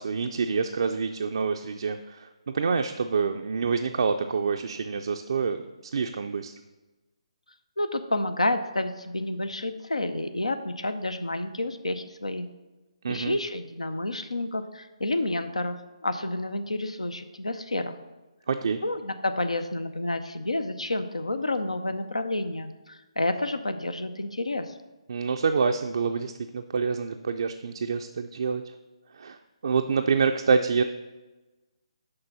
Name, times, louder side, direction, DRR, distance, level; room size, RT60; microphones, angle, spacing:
voice 1, 0.0-5.6 5.9-6.5 13.0-13.4 18.5-18.8 25.1-28.6 29.1-29.4 29.6-30.8, right 5 dB, 55° right, 5 dB, 0.4 m, -27 dB
voice 2, 7.8-12.5 13.1-18.0 18.8-24.7, left 2 dB, 85° left, 9 dB, 0.6 m, -30 dB
6.7 x 5.4 x 5.5 m, 1.1 s
figure-of-eight pair, 145°, 3 cm